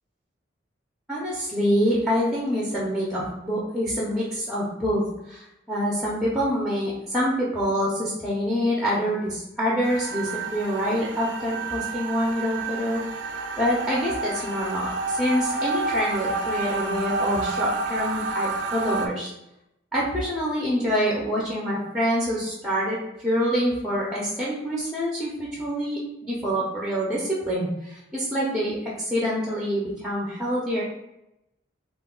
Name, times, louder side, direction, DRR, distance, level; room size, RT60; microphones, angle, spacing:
voice 1, 1.1-13.0 13.6-19.3 19.9-30.8, equal, ahead, -5 dB, 0.4 m, -26 dB
sound 1, 9.8-19.1, right 3 dB, 70° right, 0.3 m, -29 dB
2.3 x 2.2 x 3.6 m, 0.88 s
head